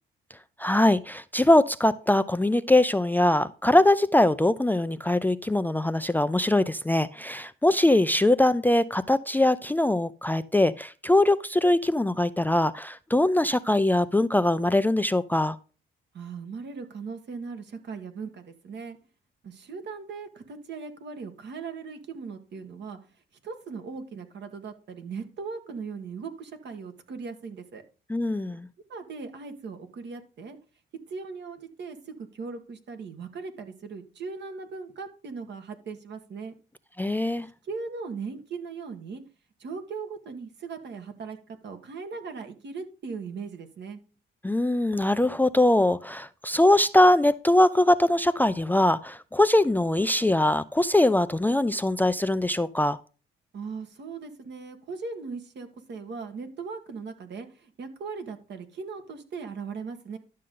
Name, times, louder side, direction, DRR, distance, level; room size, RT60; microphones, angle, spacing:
voice 1, 0.6-15.6 28.1-28.7 37.0-37.5 44.4-53.0, left 1 dB, 10° left, 15 dB, 0.4 m, -22 dB
voice 2, 16.1-19.0 19.4-23.0 23.4-27.8 28.9-30.6 31.1-36.5 37.6-39.2 39.6-44.0 53.5-60.2, right 5 dB, 60° right, 7 dB, 1.8 m, -38 dB
11.5 x 6.5 x 3.8 m, 0.36 s
cardioid pair, 90°, 20 cm